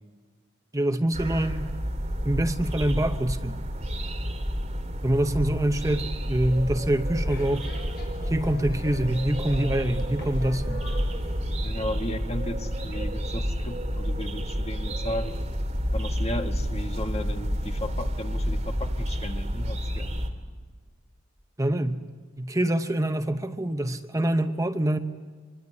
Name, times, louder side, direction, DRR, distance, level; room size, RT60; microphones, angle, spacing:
voice 1, 0.7-1.7 2.2-3.6 5.0-7.7 8.2-10.8 21.6-22.1 22.4-25.0, right 1 dB, 15° right, 7 dB, 0.9 m, -25 dB
sound 1, 1.1-20.3, equal, 35° right, 2.7 m, -30 dB
sound 2, 6.1-11.5, left 2 dB, 55° left, 7.4 m, -44 dB
voice 2, 11.6-15.4 15.9-20.2, left 1 dB, 30° left, 5 dB, 1.8 m, -35 dB
25.5 x 24.0 x 9.6 m, 1.5 s
head